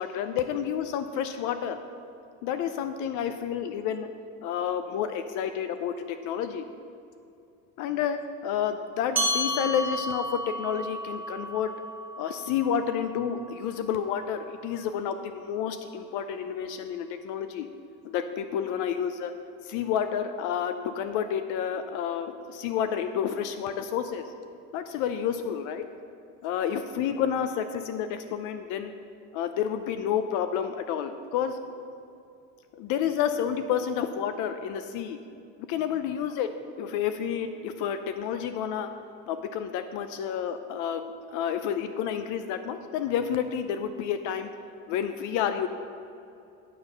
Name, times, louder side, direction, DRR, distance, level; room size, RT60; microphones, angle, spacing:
voice 1, 0.0-1.8 2.4-4.1 4.4-6.6 7.8-11.7 12.2-17.7 18.0-19.3 19.6-24.2 24.7-25.8 26.4-28.9 29.3-31.6 32.7-35.2 35.6-36.5 36.8-38.9 39.3-44.5 44.9-45.7, left 8 dB, 60° left, 9 dB, 0.5 m, -30 dB
sound 1, 9.1-14.0, equal, 5° right, 1.5 m, -33 dB
9.3 x 6.0 x 5.5 m, 2.7 s
cardioid pair, 175°, 35 cm